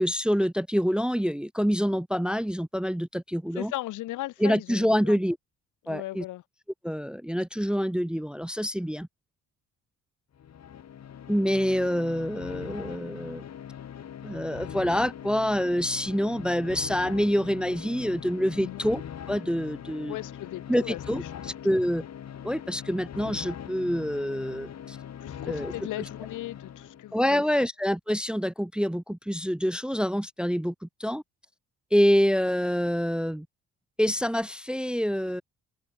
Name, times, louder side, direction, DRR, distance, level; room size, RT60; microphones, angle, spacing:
voice 1, 0.0-3.7 4.4-5.4 5.9-6.2 6.8-9.1 11.3-13.4 14.2-19.0 19.3-20.2 20.7-21.2 21.6-22.0 22.4-25.0 25.5-25.7 27.1-31.2 31.9-33.5 34.0-35.4, equal, 5° right, 0.6 m, -26 dB
voice 2, 3.6-5.2 5.8-6.4 18.6-18.9 20.1-21.0 21.3-21.8 25.2-27.4, left 16 dB, 90° left, 1.8 m, -37 dB
sound 1, 10.3-27.2, left 9 dB, 60° left, 6.1 m, -41 dB
cardioid pair, 90°, 30 cm